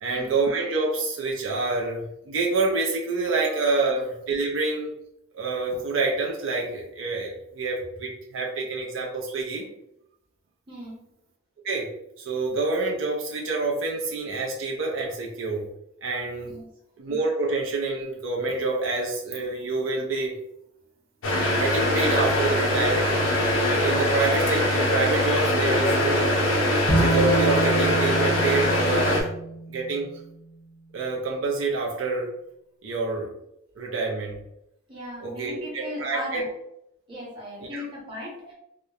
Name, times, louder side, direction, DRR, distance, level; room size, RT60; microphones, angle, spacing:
voice 1, 0.0-4.9 5.3-9.7 11.6-11.9 12.2-15.7 16.0-16.5 17.0-20.3 21.5-23.3 23.7-26.3 26.9-29.3 29.7-30.1 30.9-32.3 32.8-33.3 33.8-34.4 35.2-36.4 37.7-37.9, right 3 dB, 80° right, -1 dB, 0.4 m, -27 dB
voice 2, 10.7-11.0 16.4-16.7 34.9-36.5 37.1-38.5, equal, 25° right, -6 dB, 0.9 m, -37 dB
sound 1, 21.2-29.2, left 1 dB, 80° left, 0.5 m, -23 dB
Bowed string instrument, 26.9-30.2, right 2 dB, 30° left, 0.5 m, -27 dB
2.8 x 2.0 x 2.3 m, 0.82 s
head